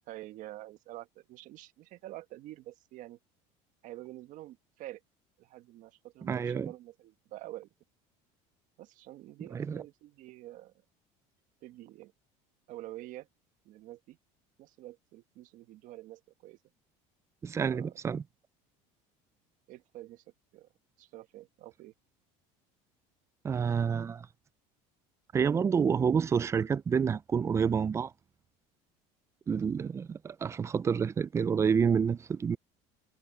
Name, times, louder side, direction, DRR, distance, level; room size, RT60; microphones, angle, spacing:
voice 1, 0.1-3.2 3.8-5.0 5.4-7.7 8.8-10.7 11.6-12.1 12.7-13.3 13.6-14.2 14.6-16.6 17.7-17.9 19.7-20.2 20.5-20.7 21.0-21.9, right 15 dB, 60° right, 1.5 m, -47 dB
voice 2, 6.2-6.7 9.5-9.8 17.4-18.2 23.4-24.3 25.3-28.1 29.5-32.6, right 6 dB, 20° right, 0.3 m, -28 dB
cardioid pair, 125°, 15 cm